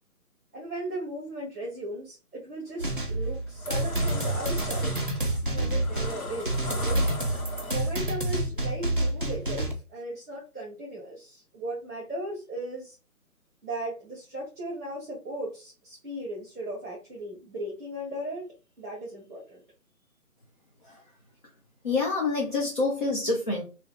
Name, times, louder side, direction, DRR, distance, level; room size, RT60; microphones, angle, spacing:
voice 1, 0.5-5.0 5.4-7.0 7.7-13.0 13.6-18.5 18.8-19.6, right 1 dB, 10° right, 0.7 m, -37 dB
sound 1, 2.7-2.9 3.4-8.1, left 2 dB, 65° left, 1.4 m, -39 dB
sound 2, 2.8-9.7, right 1 dB, 40° right, 0.4 m, -28 dB
voice 2, 21.8-23.6, left 3 dB, 35° left, 0.7 m, -27 dB
3.0 x 2.8 x 3.1 m
figure-of-eight pair, 160°, 45 cm